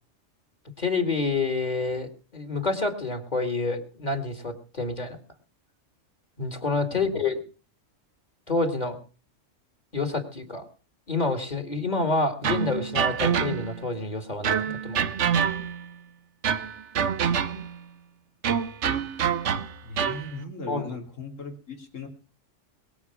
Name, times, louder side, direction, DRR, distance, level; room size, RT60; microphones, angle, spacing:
voice 1, 0.8-5.2 6.4-7.4 8.5-9.0 9.9-10.7 11.1-15.1 20.7-20.9, left 3 dB, 35° left, 6 dB, 2.4 m, -28 dB
voice 2, 6.9-7.2 19.8-22.1, left 3 dB, 75° left, 3 dB, 3.3 m, -38 dB
sound 1, 12.4-13.8 14.4-15.9 16.4-17.8 18.4-20.3, right 7 dB, 65° right, 1.2 m, -26 dB
22.0 x 7.4 x 6.0 m, 0.38 s
omnidirectional pair, 1.3 m